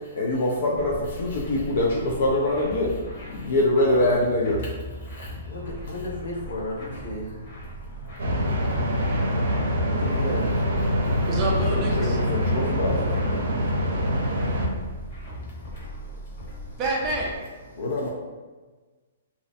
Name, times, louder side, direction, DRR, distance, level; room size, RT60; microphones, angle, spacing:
voice 1, 0.2-0.9 1.2-2.9 3.5-4.6 11.7-13.0 17.8-18.1, left 1 dB, 60° left, -2 dB, 0.4 m, -23 dB
sound 1, 0.8-17.4, right 1 dB, 35° left, 0.9 m, -39 dB
voice 2, 5.4-7.3 9.4-10.4 13.1-13.5, left 1 dB, 85° left, -4 dB, 0.8 m, -34 dB
sound 2, 8.2-14.7, equal, 75° right, 0.5 m, -24 dB
voice 3, 11.3-12.2 16.8-17.3, right 2 dB, 20° right, -2 dB, 0.4 m, -27 dB
2.4 x 2.1 x 2.5 m, 1.3 s
hypercardioid pair, 170°, 0 cm